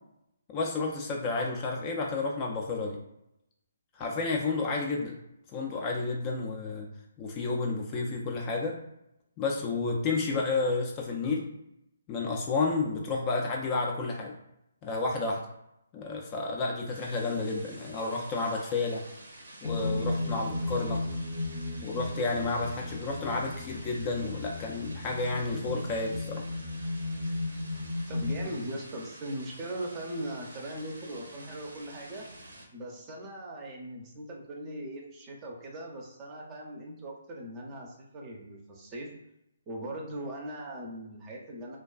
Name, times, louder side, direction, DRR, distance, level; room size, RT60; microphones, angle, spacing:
voice 1, 0.5-3.0 3.9-5.1 5.5-6.9 7.2-8.8 9.4-11.4 12.1-14.3 14.8-15.4 15.9-19.0 19.6-21.0 21.8-26.4, left 3 dB, 25° left, 0 dB, 0.3 m, -31 dB
sound 1, 16.9-32.7, right 1 dB, 75° right, 0.6 m, -50 dB
sound 2, 19.6-28.4, left 2 dB, 65° left, 0.6 m, -35 dB
voice 2, 28.1-32.3 32.7-39.1 39.7-41.8, right 1 dB, 25° right, -1 dB, 0.5 m, -39 dB
2.4 x 2.2 x 2.3 m, 0.83 s
figure-of-eight pair, 145°, 0 cm